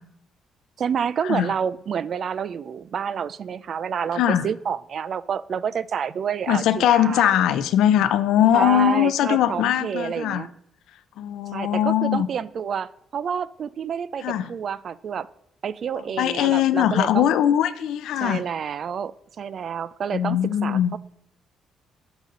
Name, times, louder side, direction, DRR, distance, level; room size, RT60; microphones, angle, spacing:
voice 1, 0.8-7.3 8.5-10.5 11.5-15.3 15.6-17.3 18.2-21.0, right 7 dB, 55° right, 17 dB, 0.4 m, -28 dB
voice 2, 4.2-4.5 6.5-10.5 11.2-12.3 14.2-14.5 16.2-18.4 20.1-20.9, left 11 dB, 85° left, 13 dB, 0.6 m, -21 dB
9.9 x 8.0 x 3.8 m, 0.73 s
cardioid pair, 90°, 0 cm